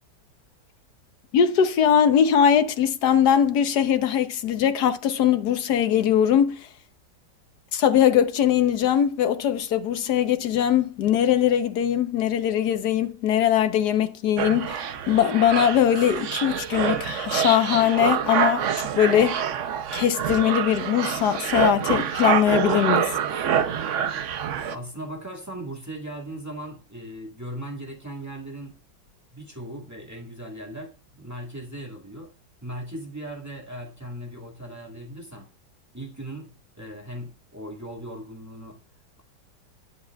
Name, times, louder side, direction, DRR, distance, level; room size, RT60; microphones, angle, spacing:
voice 1, 1.3-6.7 7.7-18.7 19.0-19.4 19.9-23.1, left 9 dB, 70° left, 1.5 m, -21 dB
sound 1, 14.4-24.7, right 8 dB, 55° right, 0.9 m, -26 dB
voice 2, 24.6-28.8 29.3-32.3 32.6-35.5 35.9-36.5 36.8-38.8, right 1 dB, 10° right, 2.0 m, -38 dB
19.5 x 8.4 x 2.3 m
omnidirectional pair, 1.9 m